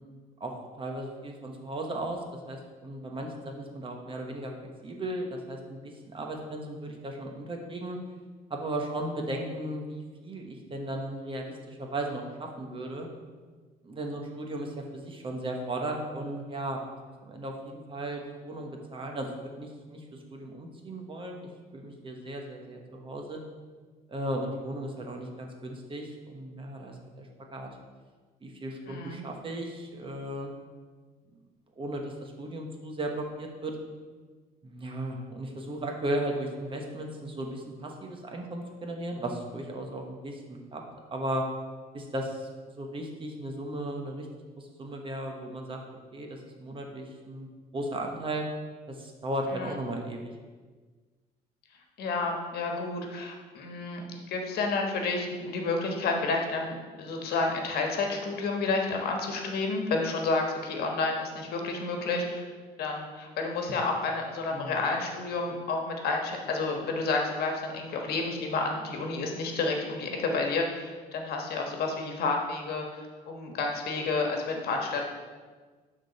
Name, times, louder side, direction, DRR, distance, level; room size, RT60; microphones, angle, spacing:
voice 1, 0.4-4.5 4.8-8.0 8.5-13.1 13.8-16.9 17.2-19.3 19.6-23.4 24.1-27.3 27.5-27.7 28.4-30.5 31.8-33.7 34.6-40.8 41.1-41.4 41.9-42.5 42.8-44.3 44.6-45.8 46.1-47.5 47.7-48.5 48.9-50.3 64.5-64.8, right 1 dB, 30° right, 2 dB, 1.1 m, -36 dB
voice 2, 28.9-29.2 49.5-49.8 52.0-62.5 62.8-72.8 73.3-75.0, left 3 dB, 70° left, 2 dB, 1.3 m, -30 dB
11.5 x 3.8 x 4.1 m, 1.4 s
cardioid pair, 110°, 17 cm